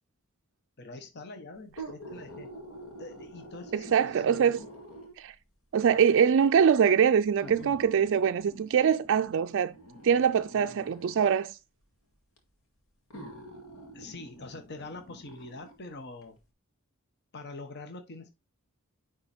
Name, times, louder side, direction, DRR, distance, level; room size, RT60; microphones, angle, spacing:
voice 1, 0.8-2.5 3.0-4.7 7.5-7.8 13.9-16.4 17.3-18.3, left 2 dB, 50° left, 1.1 m, -44 dB
sound 1, 1.6-5.3 6.2-6.3 7.4-11.3 12.4-12.5 13.1-15.8 16.2-16.3, right 1 dB, 70° left, 2.1 m, -47 dB
voice 2, 3.7-4.6 5.2-5.3 5.7-9.7 10.0-11.6, right 7 dB, 60° right, 0.4 m, -23 dB
9.7 x 3.8 x 4.3 m
head